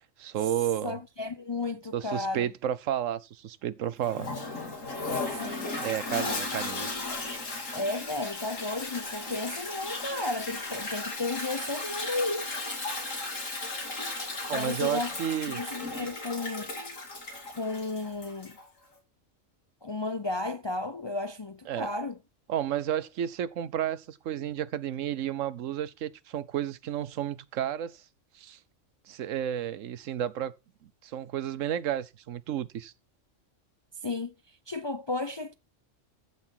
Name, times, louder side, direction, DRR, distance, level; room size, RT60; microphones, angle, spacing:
voice 1, 0.2-1.0 1.9-4.3 5.8-6.9 14.5-15.6 21.7-21.9 22.5-28.0 28.3-28.6 29.1-30.5 30.8-32.9, right 10 dB, 85° right, 1.1 m, -32 dB
voice 2, 0.8-2.5 5.4-5.7 7.7-12.5 14.5-15.1 15.5-16.7 17.5-18.6 19.8-22.2 34.0-34.3 34.7-35.5, left 2 dB, 40° left, 0.4 m, -33 dB
Toilet flush, 4.0-18.7, left 3 dB, 85° left, 3.0 m, -35 dB
14.5 x 6.0 x 4.5 m
omnidirectional pair, 1.3 m